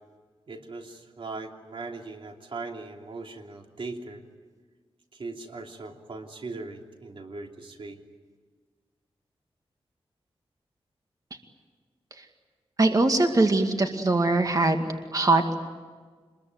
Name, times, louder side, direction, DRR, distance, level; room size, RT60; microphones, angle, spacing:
voice 1, 0.5-4.2 5.1-8.0, right 3 dB, 60° right, 3 dB, 3.0 m, -39 dB
voice 2, 12.8-15.5, right 2 dB, 35° right, 5 dB, 2.2 m, -22 dB
26.0 x 21.5 x 9.5 m, 1.5 s
wide cardioid pair, 80°, 10 cm